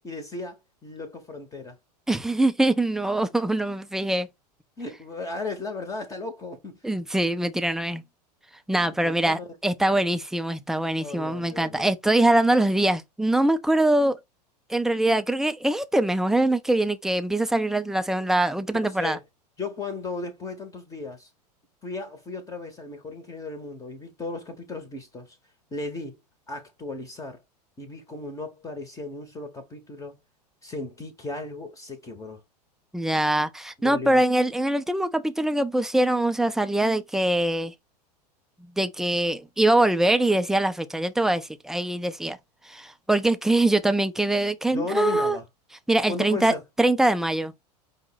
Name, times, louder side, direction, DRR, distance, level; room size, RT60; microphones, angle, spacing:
voice 1, 0.0-1.8 4.8-6.8 8.7-9.5 11.0-11.9 18.8-19.2 19.6-21.3 21.8-25.4 25.7-26.2 26.5-27.4 27.8-30.2 30.6-32.4 33.8-34.2 44.7-45.5 46.1-46.6, left 3 dB, 15° left, 0.7 m, -36 dB
voice 2, 2.1-4.3 6.8-8.0 8.7-14.2 14.7-19.2 32.9-37.7 38.8-42.4 42.7-45.4 45.9-47.5, right 1 dB, ahead, 0.3 m, -23 dB
5.2 x 2.0 x 3.8 m
figure-of-eight pair, 90°, 21 cm